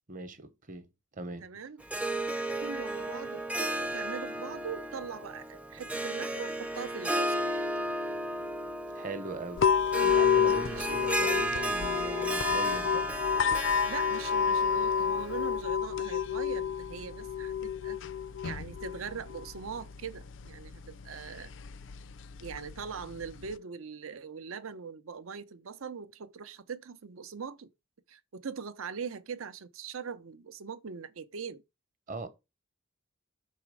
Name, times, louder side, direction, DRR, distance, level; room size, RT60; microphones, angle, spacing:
voice 1, 0.1-0.9 1.1-1.5 8.9-9.6 10.0-13.1 32.1-32.3, right 3 dB, 40° right, 0.9 m, -40 dB
voice 2, 1.4-1.8 2.6-7.5 10.6-11.0 13.8-18.0 18.4-21.5 22.4-27.7 28.1-31.6, right 6 dB, 80° right, 0.6 m, -41 dB
Harp, 1.8-15.6, right 1 dB, 5° right, 0.5 m, -34 dB
sound 1, 9.6-23.6, left 7 dB, 60° left, 0.4 m, -30 dB
6.0 x 4.2 x 4.8 m
head